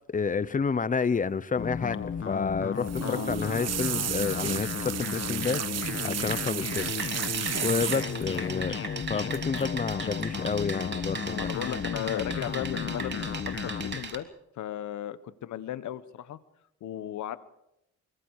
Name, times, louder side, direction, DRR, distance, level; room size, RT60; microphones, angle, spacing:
voice 1, 0.1-7.2 7.6-8.8 9.1-11.5, left 5 dB, 25° left, 17 dB, 0.9 m, -30 dB
sound 1, 1.6-14.0, left 6 dB, 45° left, 1.5 m, -34 dB
sound 2, 2.8-8.4 9.3-9.6 9.9-10.2 11.4-12.0 12.3-12.9 13.3-13.7 14.1-14.2, right 10 dB, 55° right, 1.2 m, -34 dB
sound 3, 6.8-14.1, right 4 dB, 35° right, 3.1 m, -38 dB
voice 2, 11.3-14.3 14.6-16.4 16.8-17.4, left 11 dB, 70° left, 14 dB, 1.3 m, -35 dB
25.0 x 24.0 x 4.9 m, 0.84 s
cardioid pair, 90°, 30 cm